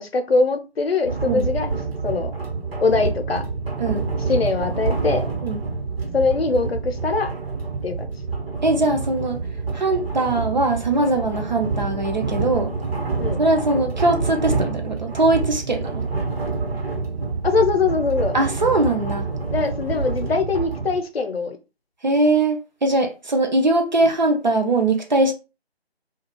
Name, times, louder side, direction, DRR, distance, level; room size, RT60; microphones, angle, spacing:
voice 1, 0.0-1.7 2.0-2.3 2.8-3.4 4.3-5.3 6.1-7.3 7.8-8.1 13.2-13.4 17.4-18.4 19.5-21.6, left 4 dB, 65° left, 0.6 m, -22 dB
sound 1, 1.1-21.0, right 4 dB, 65° right, 1.1 m, -27 dB
voice 2, 8.6-9.4 9.7-12.7 13.4-16.1 18.3-19.3 22.0-25.3, right 2 dB, 45° right, 0.5 m, -21 dB
2.3 x 2.2 x 3.0 m
figure-of-eight pair, 155°, 32 cm